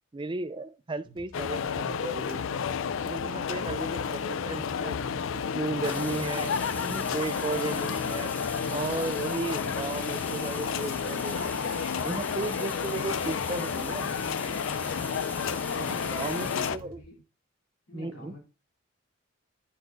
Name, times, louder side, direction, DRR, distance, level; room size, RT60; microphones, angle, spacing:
voice 1, 0.1-2.4 3.0-5.0 5.3-6.5 6.8-8.3 8.7-11.6 12.0-14.1 15.7-17.0 17.9-18.3, right 3 dB, 25° right, 0.3 m, -35 dB
sound 1, 1.0-17.0, right 2 dB, 45° right, 1.9 m, -50 dB
sound 2, 1.3-16.8, left 6 dB, 65° left, 0.4 m, -31 dB
sound 3, 5.8-16.7, left 2 dB, 10° left, 0.7 m, -41 dB
voice 2, 15.5-17.2 17.9-18.4, left 1 dB, 85° left, 3.3 m, -51 dB
10.0 x 9.3 x 2.6 m
head